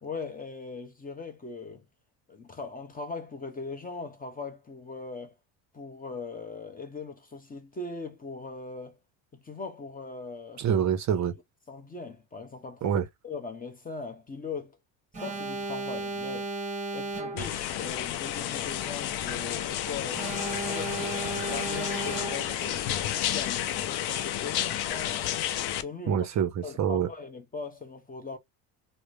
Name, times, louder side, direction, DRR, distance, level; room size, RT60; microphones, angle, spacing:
voice 1, 0.0-1.8 2.3-5.3 5.7-9.0 9.3-10.7 11.7-14.8 15.2-16.5 16.9-20.3 20.6-21.2 21.5-25.3 25.7-26.3 26.6-28.4, left 4 dB, 20° left, 0.6 m, -40 dB
voice 2, 10.6-11.3 12.8-13.1 26.1-27.1, right 8 dB, 40° right, 0.5 m, -26 dB
Alarm, 15.1-17.7 20.1-22.7, right 2 dB, 15° right, 1.0 m, -35 dB
sound 1, 17.4-25.8, left 11 dB, 60° left, 0.6 m, -31 dB
3.0 x 2.0 x 2.5 m
supercardioid pair, 85°, 46 cm